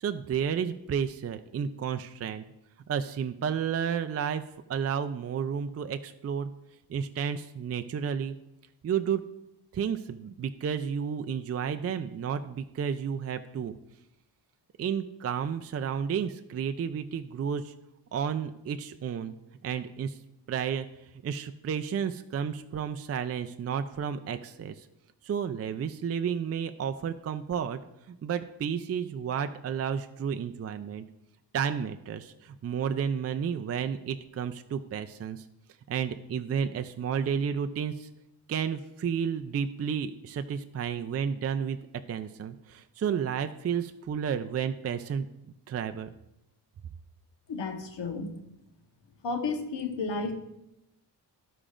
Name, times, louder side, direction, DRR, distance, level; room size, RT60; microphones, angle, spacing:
voice 1, 0.0-2.4 2.9-4.4 4.7-6.5 6.9-8.4 8.8-9.2 9.7-13.7 14.8-17.7 18.1-19.3 19.6-20.2 20.5-20.9 21.2-24.9 25.2-27.8 28.1-31.0 31.5-35.5 35.9-38.1 38.5-41.8 42.1-45.3 45.7-46.1, right 7 dB, 40° right, 8 dB, 0.4 m, -31 dB
voice 2, 47.5-48.3 49.2-50.3, left 4 dB, 85° left, 3 dB, 1.3 m, -32 dB
14.5 x 4.9 x 2.5 m, 0.86 s
cardioid pair, 85°, 42 cm